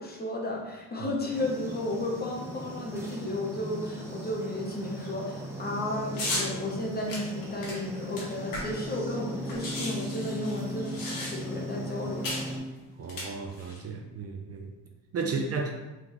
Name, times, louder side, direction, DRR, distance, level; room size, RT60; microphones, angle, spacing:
voice 1, 0.0-10.9 11.2-12.4 15.2-15.4, left 1 dB, 25° left, -1 dB, 0.8 m, -33 dB
sound 1, 1.3-12.6, equal, 5° right, 0.7 m, -38 dB
sound 2, 6.1-6.5 7.1-8.9 9.2-9.3 9.5-11.6 12.2-12.5 13.0-13.8, left 2 dB, 55° left, 1.5 m, -35 dB
voice 2, 13.0-14.7 15.1-15.7, right 4 dB, 40° right, 2 dB, 0.5 m, -33 dB
3.8 x 3.3 x 3.0 m, 1.1 s
cardioid pair, 115°, 40 cm